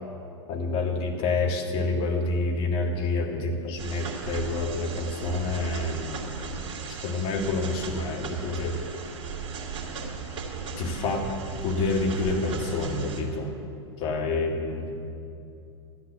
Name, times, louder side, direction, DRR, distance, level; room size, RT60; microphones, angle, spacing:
voice 1, 0.5-6.2 7.0-8.7 10.8-11.3 11.6-13.5 14.0-14.9, left 3 dB, 35° left, 1 dB, 2.1 m, -28 dB
sound 1, 3.8-13.2, right 5 dB, 35° right, 2.5 m, -36 dB
12.5 x 10.5 x 7.1 m, 2.6 s
figure-of-eight pair, 95°, 15 cm